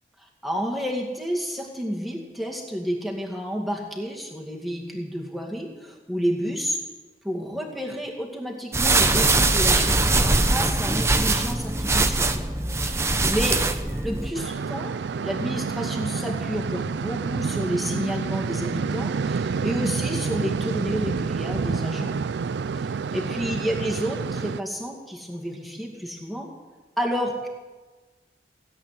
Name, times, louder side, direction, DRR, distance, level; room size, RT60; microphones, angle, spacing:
voice 1, 0.4-6.8 7.2-13.6 14.0-22.2 22.7-26.5 27.0-27.5, equal, ahead, 0 dB, 2.3 m, -30 dB
sound 1, 8.7-14.3, right 3 dB, 15° right, 0.8 m, -22 dB
sound 2, 14.3-24.6, right 5 dB, 75° right, 0.4 m, -28 dB
17.0 x 8.5 x 9.9 m, 1.3 s
head